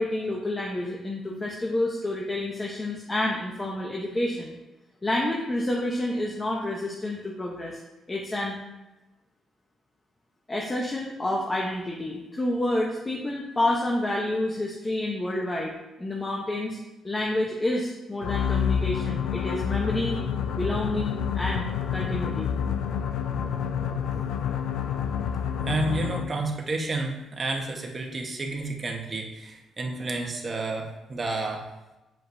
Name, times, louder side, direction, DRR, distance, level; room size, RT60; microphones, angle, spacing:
voice 1, 0.0-4.5 5.0-7.8 8.1-8.5 10.5-15.7 16.0-16.8 17.0-20.2 20.5-22.5, left 1 dB, 20° left, -2 dB, 0.9 m, -29 dB
sound 1, 18.2-26.5, left 7 dB, 85° left, 0.4 m, -28 dB
voice 2, 25.7-31.6, right 2 dB, 35° right, 1 dB, 1.1 m, -30 dB
7.5 x 5.2 x 2.7 m, 1.0 s
cardioid pair, 90°, 0 cm